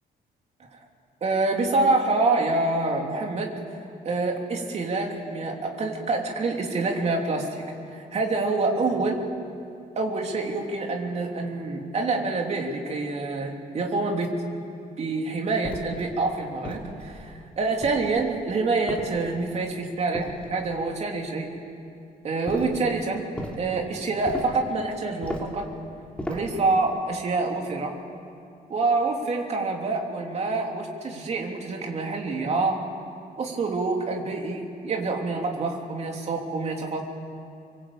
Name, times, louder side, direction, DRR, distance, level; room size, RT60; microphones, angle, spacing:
voice 1, 1.2-3.5 4.0-7.6 7.9-9.2 9.9-14.3 15.0-21.5 22.2-23.3 23.6-25.7 26.3-27.9 28.7-32.8 33.4-37.0, right 3 dB, 40° right, 1 dB, 3.1 m, -26 dB
sound 1, 15.6-16.1 16.6-17.3 17.8-18.3 18.9-19.5 20.1-20.8 22.5-22.8 23.4-23.6 24.3-24.7 25.2-25.6 26.2-26.6, equal, 5° left, 3.0 m, -35 dB
25.5 x 23.0 x 8.6 m, 2.5 s
cardioid pair, 165°, 16 cm